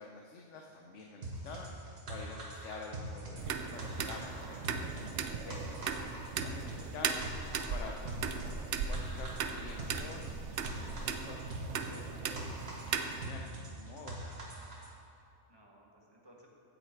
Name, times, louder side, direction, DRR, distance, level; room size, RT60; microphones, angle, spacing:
voice 1, 0.0-6.1 6.4-7.3 7.7-10.3 10.6-10.7 11.0-14.2, left 3 dB, 75° left, 1 dB, 1.1 m, -48 dB
sound 1, 1.2-14.9, right 1 dB, 55° right, 1.6 m, -43 dB
sound 2, 3.4-13.3, right 6 dB, 70° right, 1.0 m, -38 dB
voice 2, 14.2-14.5 15.5-16.5, equal, 20° right, -3 dB, 1.6 m, -61 dB
16.0 x 6.6 x 4.6 m, 2.5 s
omnidirectional pair, 1.3 m